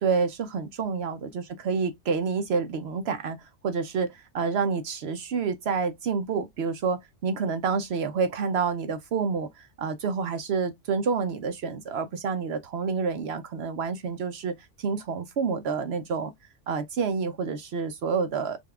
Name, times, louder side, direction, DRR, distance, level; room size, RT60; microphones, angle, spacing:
voice 1, 0.0-16.3 16.7-18.6, right 5 dB, 65° right, 0.8 m, -28 dB
5.1 x 2.3 x 2.3 m
omnidirectional pair, 1.2 m